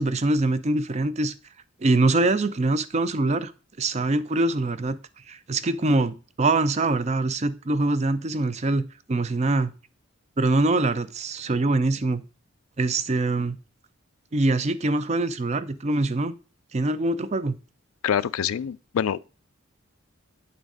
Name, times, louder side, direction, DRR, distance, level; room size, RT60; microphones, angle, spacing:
voice 1, 0.0-1.3 1.8-3.5 3.8-5.0 5.3-8.8 9.1-9.7 10.4-12.2 12.8-13.6 14.3-16.3 16.7-17.6, right 2 dB, 30° right, 0.4 m, -23 dB
voice 2, 18.0-19.2, left 8 dB, 80° left, 0.4 m, -25 dB
9.0 x 4.0 x 4.7 m
head